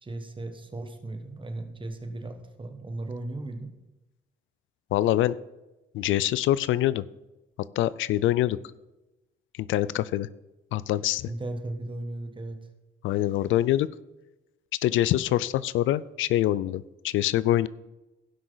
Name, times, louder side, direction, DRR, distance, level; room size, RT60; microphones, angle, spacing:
voice 1, 0.0-3.7 11.3-12.7, right 2 dB, 25° right, 6 dB, 1.4 m, -36 dB
voice 2, 4.9-5.4 5.9-7.1 7.8-8.6 9.7-10.3 10.7-11.3 13.0-13.9 14.8-17.7, left 14 dB, 80° left, 18 dB, 0.4 m, -24 dB
16.5 x 6.0 x 4.0 m, 1.0 s
cardioid pair, 90°, 20 cm